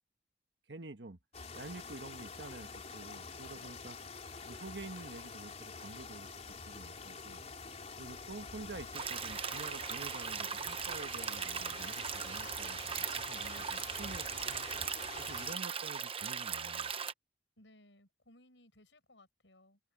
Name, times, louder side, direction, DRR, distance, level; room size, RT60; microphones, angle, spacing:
voice 1, 0.7-1.2 1.5-4.0 4.4-7.5 8.0-14.9 15.2-16.9, right 2 dB, 70° right, 1.5 m, -49 dB
sound 1, 1.3-15.5, left 4 dB, 40° left, 3.8 m, -47 dB
voice 2, 3.5-3.8 17.6-19.8, left 1 dB, 90° left, 7.5 m, -62 dB
sound 2, 8.9-17.1, right 7 dB, 30° right, 0.9 m, -39 dB
head